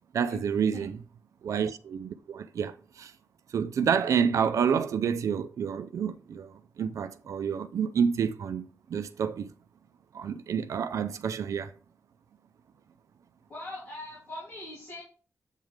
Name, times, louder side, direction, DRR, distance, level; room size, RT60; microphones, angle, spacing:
voice 1, 0.1-1.0 1.4-3.1 3.5-9.5 10.1-11.7, right 7 dB, 85° right, 0.4 m, -29 dB
voice 2, 13.5-15.0, left 2 dB, 40° left, 3.0 m, -41 dB
8.2 x 3.6 x 4.8 m
wide cardioid pair, 110°, 5 cm